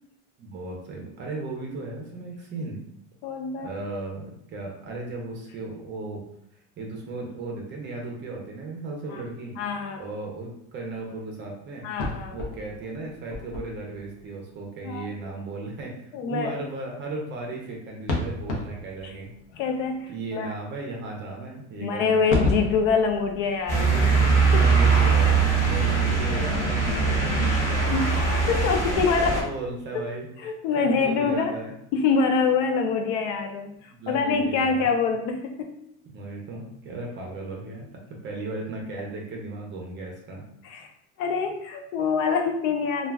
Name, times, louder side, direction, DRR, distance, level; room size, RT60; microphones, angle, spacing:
voice 1, 0.4-2.8 3.6-6.3 6.8-9.6 10.0-11.9 12.3-19.3 20.1-22.3 24.5-28.1 28.9-30.3 30.8-31.7 33.8-34.9 36.1-40.4, right 2 dB, 30° right, 0 dB, 0.5 m, -36 dB
voice 2, 3.2-3.7 9.1-9.2 9.6-10.0 11.8-12.4 14.8-15.1 16.1-16.5 19.0-19.1 19.5-20.5 21.8-24.6 27.9-29.5 29.9-30.1 30.4-31.6 31.9-35.8 40.6-40.9 41.2-43.1, left 5 dB, 90° left, 5 dB, 0.5 m, -25 dB
sound 1, 12.0-14.3 18.1-20.0 22.3-25.2 25.7-25.8 26.1-27.8, left 2 dB, 55° left, 0.7 m, -33 dB
sound 2, 23.7-29.4, right 4 dB, 25° left, 1.1 m, -21 dB
2.3 x 2.2 x 3.3 m, 0.75 s
cardioid pair, 155°, 34 cm